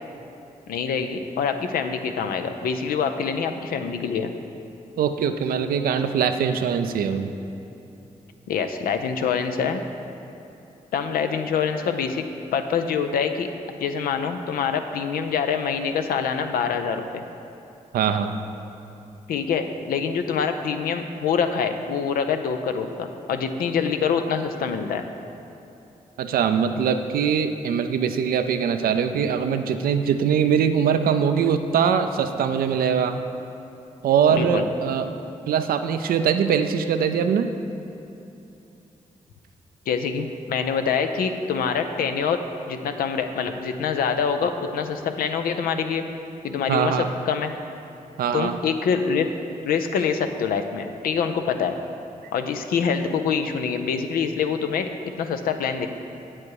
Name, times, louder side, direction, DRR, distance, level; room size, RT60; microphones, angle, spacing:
voice 1, 0.7-4.3 8.5-9.8 10.9-12.2 12.5-13.5 13.8-17.2 19.3-25.0 34.3-34.7 39.9-42.4 42.7-46.0 46.4-47.5 48.3-49.3 49.6-51.8 52.3-54.9 55.2-55.9, left 6 dB, 85° left, 7 dB, 0.5 m, -25 dB
voice 2, 5.0-7.3 17.9-18.4 26.2-33.2 34.0-35.1 35.5-37.5 46.7-47.1 48.2-48.6, right 7 dB, 85° right, 8 dB, 0.5 m, -22 dB
8.4 x 7.6 x 4.7 m, 2.8 s
supercardioid pair, 45°, 15 cm